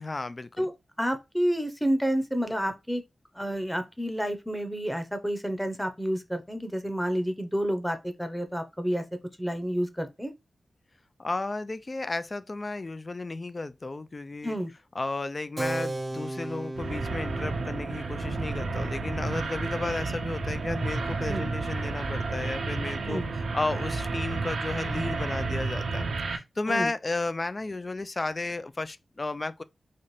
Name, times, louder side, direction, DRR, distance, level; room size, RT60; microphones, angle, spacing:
voice 1, 0.0-0.7 11.2-14.6 15.0-23.2 23.5-29.6, left 3 dB, 40° left, 0.3 m, -33 dB
voice 2, 0.6-3.0 3.3-9.0 9.4-10.3 14.4-14.7 21.3-21.4 23.1-23.3 26.7-26.9, equal, 5° left, 0.7 m, -29 dB
Keyboard (musical), 15.6-21.7, right 2 dB, 35° right, 0.4 m, -38 dB
sound 1, 16.8-26.4, right 3 dB, 90° right, 0.6 m, -31 dB
4.1 x 2.5 x 3.2 m
cardioid pair, 60°, 0 cm